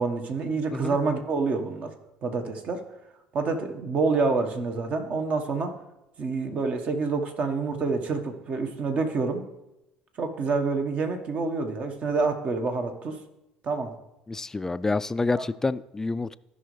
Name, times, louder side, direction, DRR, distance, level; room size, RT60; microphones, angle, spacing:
voice 1, 0.0-1.9 2.2-2.9 3.3-5.8 6.2-9.4 10.2-13.2 13.6-13.9 15.3-15.4, right 4 dB, 45° right, 6 dB, 1.3 m, -27 dB
voice 2, 14.3-16.4, left 3 dB, 15° left, 15 dB, 0.3 m, -28 dB
15.0 x 5.5 x 3.2 m, 0.93 s
hypercardioid pair, 65°, 3 cm